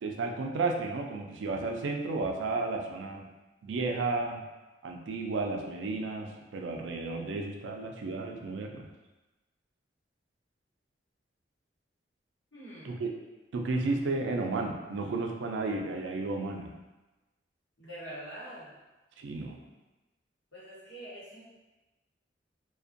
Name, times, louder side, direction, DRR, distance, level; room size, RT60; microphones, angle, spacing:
voice 1, 0.0-3.2 3.6-4.4 4.8-8.9 12.8-13.1 13.5-16.7 19.2-19.6, right 3 dB, 85° right, 2 dB, 0.4 m, -33 dB
voice 2, 12.5-12.9 17.8-18.7 20.5-21.4, right 1 dB, 80° left, -8 dB, 1.0 m, -44 dB
2.5 x 2.2 x 2.5 m, 1.1 s
head